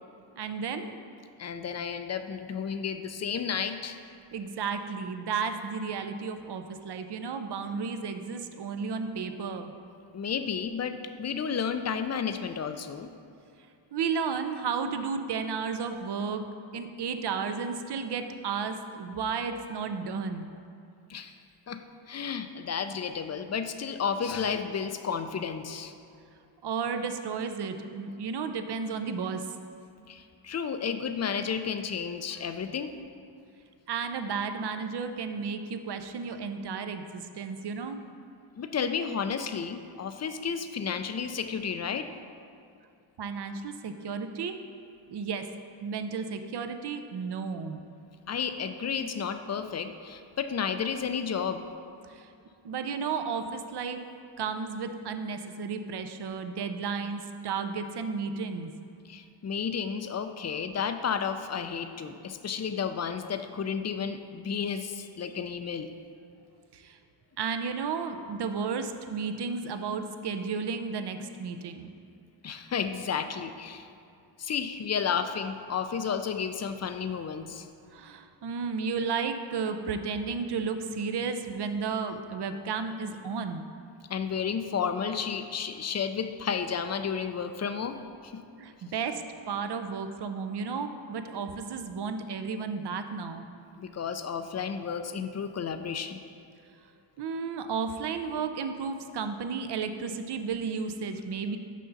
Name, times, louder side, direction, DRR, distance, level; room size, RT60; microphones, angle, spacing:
voice 1, 0.4-1.0 4.3-9.7 13.9-16.4 16.7-20.5 26.6-29.5 33.9-38.0 43.2-44.6 45.1-45.5 45.8-47.9 52.0-52.3 52.6-54.0 54.4-58.7 66.7-67.0 67.4-71.9 77.9-83.7 88.6-93.5 97.2-101.6, right 5 dB, 55° right, 8 dB, 0.6 m, -33 dB
voice 2, 1.4-4.0 10.1-13.1 21.1-21.3 21.7-21.8 22.1-25.9 30.1-32.9 38.6-42.1 48.3-51.6 59.1-65.9 72.4-73.9 74.4-77.7 84.1-88.0 88.2-88.4 93.8-96.2, left 6 dB, 35° left, 8 dB, 0.4 m, -32 dB
6.4 x 5.5 x 4.0 m, 2.4 s
cardioid pair, 55°, 50 cm